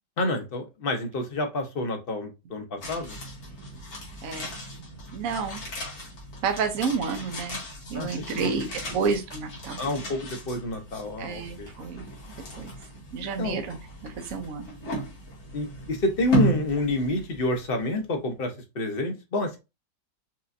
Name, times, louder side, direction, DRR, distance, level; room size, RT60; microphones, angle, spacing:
voice 1, 0.2-3.2 7.9-8.4 9.8-11.7 13.4-13.6 15.5-19.6, left 1 dB, 40° left, 4 dB, 1.0 m, -28 dB
sound 1, 2.8-18.0 18.3-18.4, right 1 dB, 60° left, 2.0 m, -36 dB
voice 2, 5.1-5.6 6.4-7.6 7.9-9.8 11.2-12.1 12.6-12.7 13.1-13.8 14.0-14.7, right 5 dB, 60° right, 5 dB, 1.1 m, -30 dB
5.7 x 2.6 x 2.5 m, 0.25 s
omnidirectional pair, 1.8 m